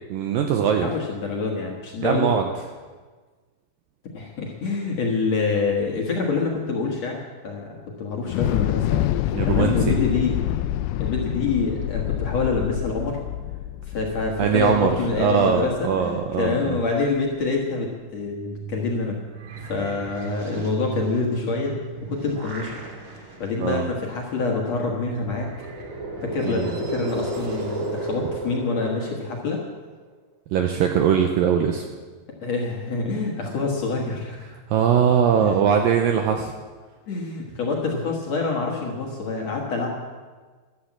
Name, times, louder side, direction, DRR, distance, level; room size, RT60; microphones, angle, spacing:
voice 1, 0.1-0.9 2.0-2.5 9.3-9.7 14.4-16.8 23.6-23.9 26.4-26.7 30.5-31.9 34.7-36.5, right 7 dB, 80° right, 4 dB, 2.1 m, -21 dB
voice 2, 0.8-2.3 4.1-7.7 8.0-10.4 11.0-13.2 13.9-19.2 19.7-21.7 22.1-22.7 23.1-25.5 26.2-29.6 32.4-34.4 35.4-35.6 37.1-39.9, left 4 dB, 55° left, -1 dB, 2.0 m, -26 dB
Thunder / Explosion, 8.3-16.5, left 14 dB, 85° left, 2.7 m, -27 dB
sound 1, 18.1-28.6, right 5 dB, 50° right, 2.6 m, -38 dB
sound 2, 21.9-23.3 23.8-23.9 25.2-29.9, right 2 dB, 25° right, 2.3 m, -33 dB
13.5 x 12.0 x 7.4 m, 1.4 s
omnidirectional pair, 4.9 m